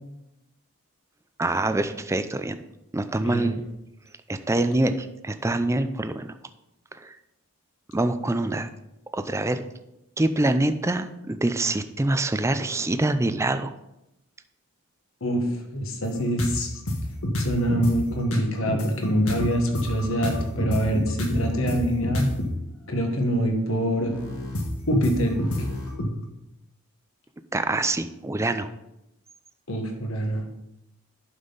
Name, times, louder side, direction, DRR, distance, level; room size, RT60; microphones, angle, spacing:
voice 1, 1.4-2.6 2.9-3.6 4.3-6.3 6.9-7.1 7.9-8.7 9.1-9.6 10.2-13.7 27.5-28.7, right 2 dB, 15° right, 10 dB, 0.4 m, -25 dB
voice 2, 3.2-3.6 15.2-15.5 15.7-16.8 17.4-22.3 22.9-24.1 24.9-25.7 29.7-30.4, equal, 70° left, 3 dB, 1.5 m, -25 dB
sound 1, 16.4-16.5 16.9-17.9 18.3-22.5 24.0-26.1, left 1 dB, 85° left, 1.5 m, -27 dB
11.0 x 5.5 x 4.0 m, 0.88 s
head